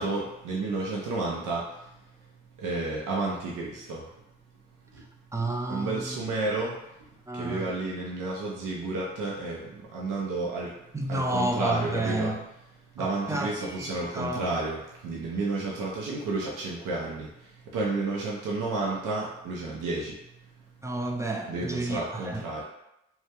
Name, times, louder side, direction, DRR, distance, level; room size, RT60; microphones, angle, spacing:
voice 1, 0.0-1.9 2.6-4.1 4.9-5.0 5.7-10.7 11.1-12.3 12.9-20.2 21.5-22.6, right 3 dB, 80° right, -4 dB, 0.5 m, -31 dB
voice 2, 5.3-6.2 7.3-7.8 10.9-12.4 13.0-14.5 15.2-15.3 20.8-22.4, right 1 dB, 10° right, 1 dB, 0.3 m, -31 dB
2.2 x 2.0 x 2.8 m, 0.86 s
supercardioid pair, 50°, 31 cm